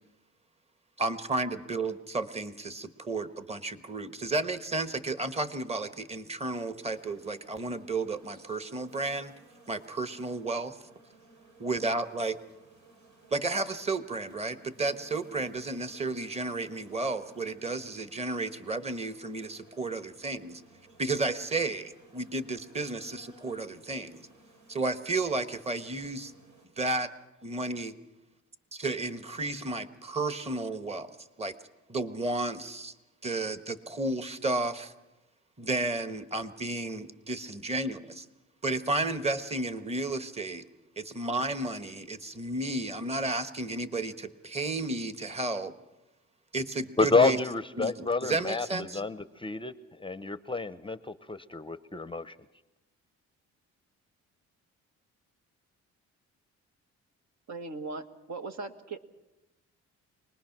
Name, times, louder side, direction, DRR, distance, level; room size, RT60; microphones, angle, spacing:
voice 1, 1.0-9.3 9.7-10.8 11.6-12.4 13.3-20.6 21.0-24.2 24.7-26.3 26.8-27.1 27.4-27.9 28.7-31.1 31.4-31.5 31.9-32.9 33.2-34.9 35.6-38.2 38.6-40.7 41.0-45.7 46.5-47.4 47.8-49.0, right 2 dB, 20° right, 11 dB, 1.2 m, -32 dB
sound 1, 6.9-26.7, right 3 dB, 90° right, 4.0 m, -58 dB
voice 2, 47.0-49.7 50.0-52.4, left 3 dB, 15° left, 13 dB, 0.6 m, -29 dB
voice 3, 57.5-59.0, right 3 dB, 65° right, 7 dB, 1.6 m, -39 dB
24.5 x 20.0 x 6.0 m, 1.0 s
cardioid pair, 90°, 30 cm